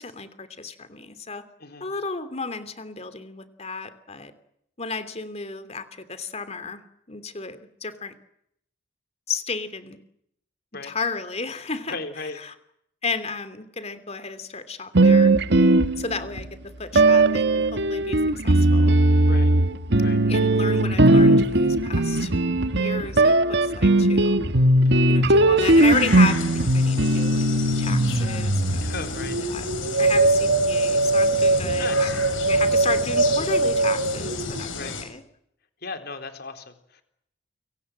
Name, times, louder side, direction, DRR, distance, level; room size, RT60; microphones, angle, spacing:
voice 1, 0.0-1.4 1.8-4.3 4.8-6.8 7.1-8.1 9.3-10.0 10.8-12.5 13.0-15.3 16.0-19.0 20.2-22.3 22.7-24.4 25.1-27.4 27.8-28.8 29.4-29.7 30.0-35.2, left 4 dB, 35° left, 12 dB, 3.0 m, -33 dB
voice 2, 1.6-1.9 10.7-10.9 11.9-12.4 19.3-19.5 20.0-20.2 24.8-25.1 28.8-29.4 31.8-32.1 34.7-35.0 35.8-37.0, left 4 dB, 55° left, 7 dB, 4.0 m, -36 dB
sound 1, 14.9-16.4 16.9-29.2, right 2 dB, 60° right, 1.5 m, -19 dB
sound 2, 25.6-35.0, left 4 dB, 80° left, 6.9 m, -33 dB
sound 3, 28.5-35.0, right 2 dB, 80° right, 3.1 m, -22 dB
29.5 x 24.5 x 7.6 m, 0.74 s
head